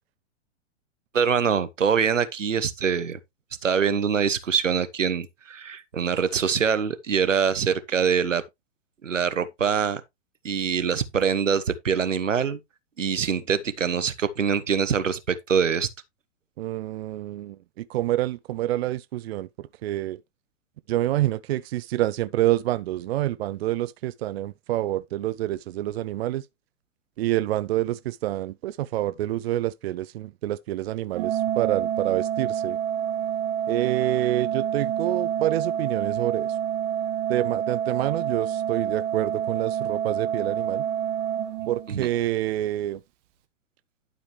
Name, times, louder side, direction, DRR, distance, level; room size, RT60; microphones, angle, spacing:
voice 1, 1.1-3.2 3.6-8.4 9.0-10.0 10.4-12.6 13.0-15.9 41.9-42.1, right 7 dB, 90° right, 1.1 m, -24 dB
voice 2, 16.6-20.2 20.9-26.5 27.2-32.8 33.7-36.5 37.3-40.9 41.7-43.0, right 14 dB, 55° right, 0.5 m, -27 dB
Organ, 31.1-42.2, right 9 dB, 40° right, 1.5 m, -28 dB
11.5 x 5.0 x 3.1 m
hypercardioid pair, 115°, 37 cm